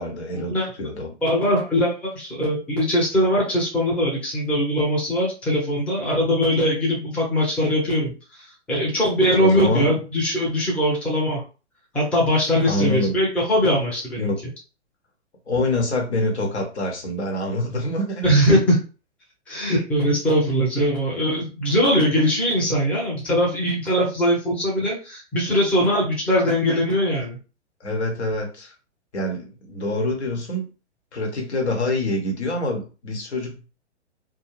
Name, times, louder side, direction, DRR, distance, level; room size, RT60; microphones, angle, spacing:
voice 1, 0.0-1.1 9.4-10.0 12.6-13.1 14.2-14.4 15.5-18.2 27.8-28.7 29.1-30.7 31.1-33.6, left 1 dB, 70° left, 1 dB, 1.1 m, -25 dB
voice 2, 1.2-11.4 11.9-14.3 18.2-18.8 19.5-27.4, equal, 5° left, -5 dB, 0.6 m, -21 dB
2.5 x 2.2 x 3.0 m, 0.33 s
figure-of-eight pair, 115°, 35 cm